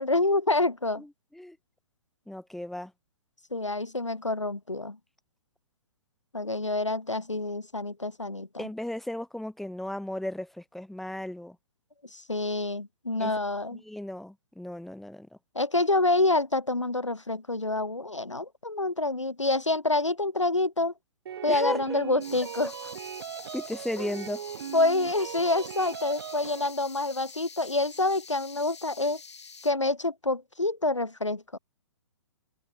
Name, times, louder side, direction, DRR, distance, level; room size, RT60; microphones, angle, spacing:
voice 1, 0.0-1.0 3.5-5.0 6.3-8.6 12.1-13.8 15.5-20.9 21.4-22.7 24.0-24.1 24.7-29.2 29.6-31.6, left 2 dB, 85° left, 4.0 m, -27 dB
voice 2, 1.0-1.6 2.3-2.9 8.6-11.6 13.2-13.3 13.8-15.3 21.5-22.0 23.3-24.4, left 1 dB, ahead, 2.4 m, -35 dB
sound 1, 21.3-26.7, right 9 dB, 55° right, 1.4 m, -39 dB
sound 2, 22.2-29.7, left 5 dB, 70° left, 7.4 m, -47 dB
figure-of-eight pair, 125°, 15 cm